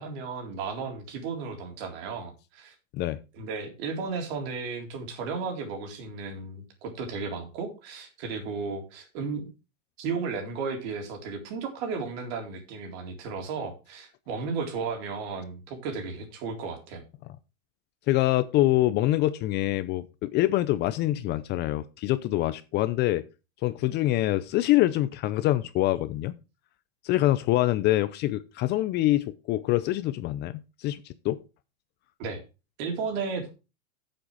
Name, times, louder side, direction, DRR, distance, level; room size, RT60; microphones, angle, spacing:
voice 1, 0.0-2.7 3.3-9.5 10.0-17.0 32.2-32.4 32.8-33.5, right 5 dB, 55° right, 3.7 m, -34 dB
voice 2, 18.1-23.2 23.6-26.4 27.0-31.4, left 16 dB, 30° left, 0.5 m, -25 dB
8.7 x 7.7 x 4.8 m
supercardioid pair, 135°, 37 cm